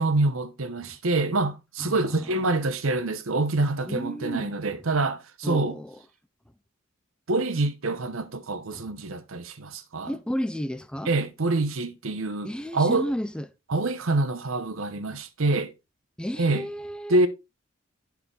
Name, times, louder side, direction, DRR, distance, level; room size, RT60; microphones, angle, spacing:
voice 1, 0.0-5.8 7.3-10.1 11.1-13.1 13.7-15.7 16.4-16.7 17.1-17.3, right 2 dB, 75° right, 0.9 m, -26 dB
voice 2, 1.8-2.2 3.9-4.5 5.4-6.0 8.7-8.9 10.0-11.1 12.4-13.5 16.2-17.2, equal, 5° left, 0.4 m, -32 dB
11.0 x 4.8 x 3.3 m
head